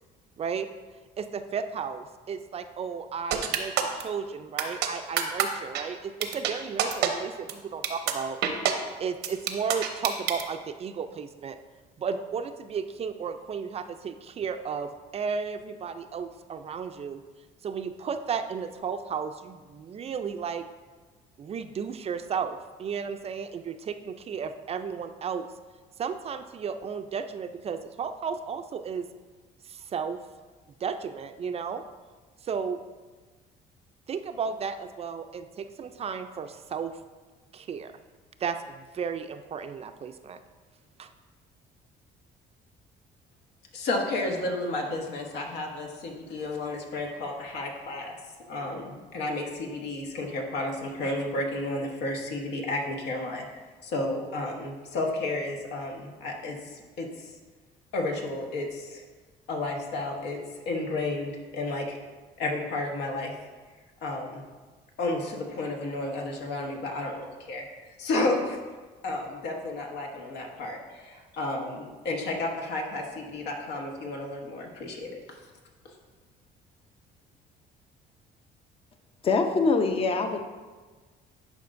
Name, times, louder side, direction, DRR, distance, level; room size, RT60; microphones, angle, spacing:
voice 1, 0.4-0.7 1.2-8.4 9.0-11.6 12.0-17.2 17.6-20.7 21.4-25.5 26.0-29.1 29.6-30.2 30.8-31.8 32.4-32.9 34.1-37.0 37.5-37.9 38.4-40.4 41.0-41.1, right 6 dB, 35° right, 9 dB, 0.4 m, -34 dB
sound 1, 3.3-4.0 4.6-4.9 5.2-5.4 5.7-5.8 6.2-6.5 6.8-7.1 7.5-7.6 7.8-8.1 8.4-8.7 9.2-10.4, right 10 dB, 85° right, 0.7 m, -25 dB
voice 2, 43.7-48.2 48.5-53.4 53.8-57.3 57.9-59.0 59.5-60.4 60.7-62.0 62.4-63.3 64.0-64.4 65.0-67.6 68.0-68.6 69.0-75.1, left 2 dB, 80° left, 1 dB, 1.2 m, -32 dB
voice 3, 79.2-80.4, left 4 dB, 35° left, 6 dB, 0.6 m, -23 dB
10.5 x 5.1 x 2.6 m, 1.4 s
cardioid pair, 110°, 17 cm